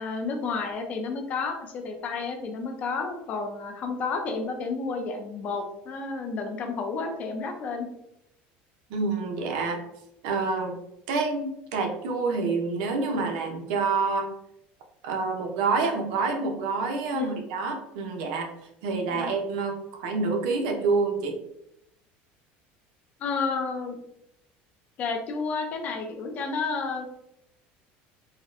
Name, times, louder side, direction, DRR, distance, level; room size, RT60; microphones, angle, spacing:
voice 1, 0.0-7.9 17.1-17.4 19.1-19.3 23.2-24.0 25.0-27.1, left 4 dB, 35° left, 4 dB, 0.5 m, -31 dB
voice 2, 8.9-9.8 10.2-10.8 11.1-14.3 15.0-18.5 18.8-21.4, right 4 dB, 80° right, 3 dB, 0.6 m, -27 dB
4.1 x 2.1 x 2.5 m, 0.79 s
cardioid pair, 160°, 5 cm